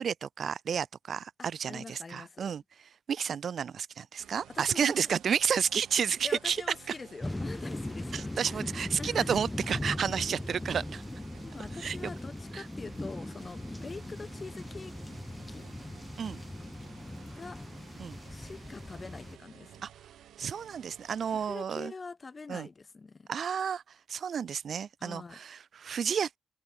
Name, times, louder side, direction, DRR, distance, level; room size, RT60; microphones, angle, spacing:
voice 1, 0.0-2.6 3.1-6.6 8.1-11.0 11.8-12.1 12.5-12.7 16.2-16.4 18.0-18.2 19.8-19.9 20.4-21.9 22.5-22.7 23.3-26.4, right 7 dB, 55° right, 0.6 m, -31 dB
voice 2, 1.4-2.5 4.2-5.1 6.2-8.6 9.0-9.3 11.4-14.9 15.5-15.7 17.3-17.6 18.3-19.9 21.3-23.3 25.0-25.4, left 4 dB, 30° left, 6.0 m, -44 dB
sound 1, 4.2-21.6, right 11 dB, 80° right, 3.3 m, -54 dB
sound 2, 7.2-19.4, left 1 dB, 10° left, 1.1 m, -39 dB
cardioid pair, 120°, 0 cm